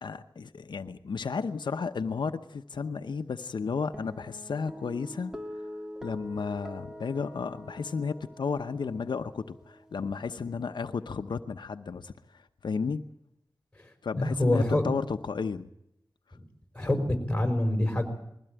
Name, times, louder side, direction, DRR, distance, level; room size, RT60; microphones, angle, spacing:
voice 1, 0.0-5.6 6.0-13.0 14.0-15.7, left 5 dB, 85° left, 8 dB, 0.8 m, -33 dB
Guitar, 3.9-10.5, equal, 10° right, 2.5 m, -45 dB
voice 2, 14.2-14.9 16.7-18.1, left 1 dB, 15° left, 5 dB, 5.0 m, -25 dB
21.5 x 16.0 x 9.0 m, 0.78 s
wide cardioid pair, 65°, 8 cm